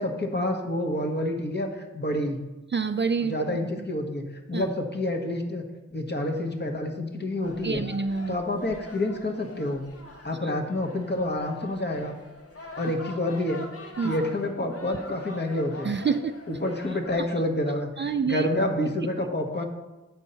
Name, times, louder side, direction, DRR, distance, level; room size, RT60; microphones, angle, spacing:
voice 1, 0.0-2.4 3.2-4.2 4.5-5.6 5.9-7.8 8.3-9.8 10.2-12.2 12.8-13.6 14.0-16.0 16.5-19.7, left 1 dB, 35° left, 2 dB, 1.1 m, -28 dB
voice 2, 2.7-3.8 4.5-4.7 7.6-8.4 10.4-10.5 14.0-14.2 15.8-16.3 17.2-17.3 18.0-18.5, right 5 dB, 40° right, 8 dB, 0.4 m, -27 dB
sound 1, 7.4-17.2, left 2 dB, 50° left, 1.0 m, -44 dB
8.2 x 4.5 x 5.5 m, 1.1 s
wide cardioid pair, 75°, 30 cm